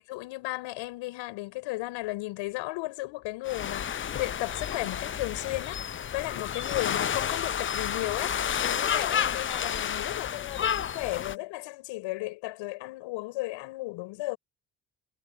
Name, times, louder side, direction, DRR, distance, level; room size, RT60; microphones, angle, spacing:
voice 1, 0.0-5.8 6.1-14.4, left 20 dB, 75° left, 5.8 m, -35 dB
sound 1, 3.5-11.4, left 8 dB, 30° left, 0.5 m, -31 dB
hypercardioid pair, 50°, 45 cm